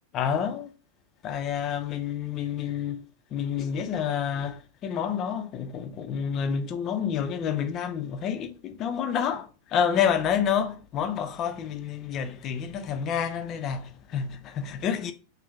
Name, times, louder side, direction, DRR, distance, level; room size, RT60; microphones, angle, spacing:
voice 1, 0.1-0.7 1.2-3.0 3.3-15.1, left 8 dB, 35° left, 0.4 m, -29 dB
2.5 x 2.2 x 3.1 m
figure-of-eight pair, 90°, 0 cm